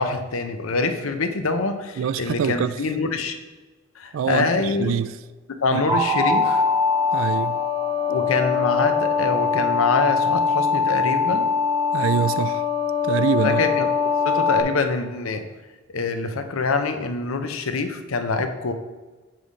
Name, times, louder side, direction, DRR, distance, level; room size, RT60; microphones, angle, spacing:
voice 1, 0.0-3.4 4.0-5.0 5.6-6.6 8.1-11.5 13.4-13.9 14.2-15.4 15.9-18.7, left 3 dB, 80° left, 7 dB, 0.7 m, -25 dB
voice 2, 2.0-2.8 4.1-5.2 5.7-6.0 7.1-7.6 11.9-12.7 13.0-13.6, right 7 dB, 65° right, 15 dB, 0.3 m, -25 dB
sound 1, 5.9-14.6, left 5 dB, 20° right, 0.9 m, -22 dB
7.6 x 3.3 x 5.1 m, 1.3 s
head